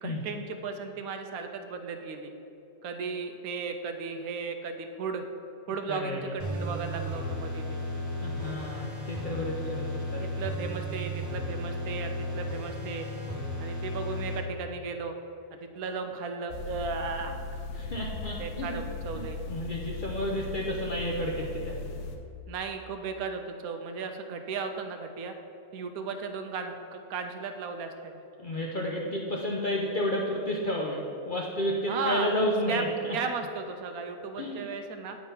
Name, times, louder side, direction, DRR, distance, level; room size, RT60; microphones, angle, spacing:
voice 1, 0.0-2.3 2.8-5.2 5.7-7.9 10.2-13.1 13.6-15.1 15.5-17.6 18.4-19.4 22.5-25.3 25.7-28.2 31.9-32.3 32.7-35.2, right 5 dB, 75° right, 6 dB, 1.0 m, -35 dB
voice 2, 5.9-6.4 8.2-10.2 17.7-18.8 19.1-21.8 28.4-33.2 34.4-34.6, left 1 dB, 60° left, -2 dB, 0.5 m, -31 dB
sound 1, 6.4-14.4, left 1 dB, 25° right, 0.3 m, -34 dB
sound 2, 16.5-22.2, left 3 dB, 90° left, 1.3 m, -38 dB
8.8 x 3.7 x 5.5 m, 2.8 s
omnidirectional pair, 1.7 m